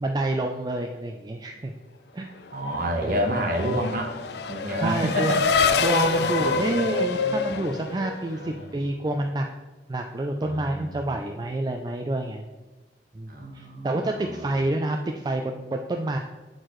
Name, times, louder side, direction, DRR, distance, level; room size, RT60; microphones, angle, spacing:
voice 1, 0.0-1.7 2.1-2.3 3.0-3.2 4.8-5.4 5.8-9.5 9.9-12.5 13.1-16.2, right 2 dB, 25° right, 3 dB, 0.3 m, -28 dB
Race car auto racing / Accelerating revving vroom, 2.5-8.6, left 4 dB, 65° left, 0.5 m, -26 dB
voice 2, 2.5-4.2 4.5-5.4 6.2-7.1 8.3-8.7 10.4-11.1 13.3-14.4, equal, 50° right, 3 dB, 1.1 m, -29 dB
7.9 x 6.4 x 3.1 m, 1.2 s
head